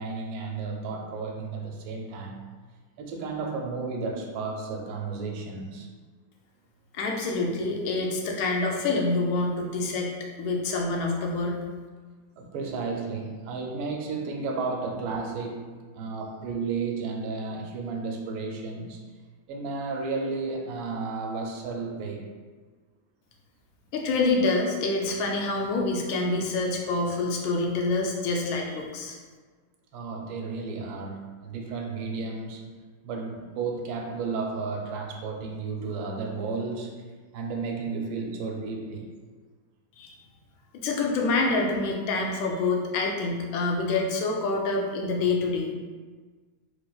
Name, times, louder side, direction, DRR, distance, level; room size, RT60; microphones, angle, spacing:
voice 1, 0.0-2.4 3.0-5.9 12.4-19.0 19.5-22.3 29.9-32.6 33.0-37.1 37.3-39.1, right 4 dB, 85° right, 0 dB, 1.3 m, -33 dB
voice 2, 6.9-10.1 10.4-11.6 23.9-29.2 40.0-40.1 40.8-45.7, left 3 dB, 85° left, 0 dB, 1.3 m, -26 dB
3.3 x 3.1 x 2.3 m, 1.4 s
omnidirectional pair, 2.0 m